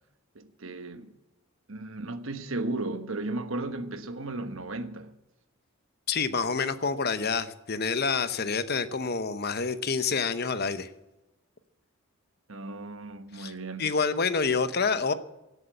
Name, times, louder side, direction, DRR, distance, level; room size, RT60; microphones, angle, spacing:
voice 1, 0.3-1.1 1.7-5.1 12.5-13.9, right 2 dB, 65° right, 1.2 m, -35 dB
voice 2, 6.1-10.9 13.3-13.5 13.8-15.1, left 5 dB, 50° left, 0.9 m, -27 dB
17.5 x 8.2 x 7.8 m
head